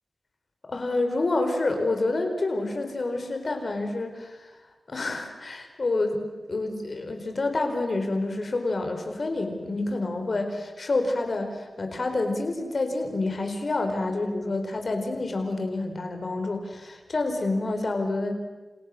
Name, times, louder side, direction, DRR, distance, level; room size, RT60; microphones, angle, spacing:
voice 1, 0.7-4.5 4.9-18.3, left 2 dB, 50° left, 5 dB, 4.4 m, -28 dB
29.0 x 28.5 x 6.6 m, 1.2 s
wide cardioid pair, 85°, 0 cm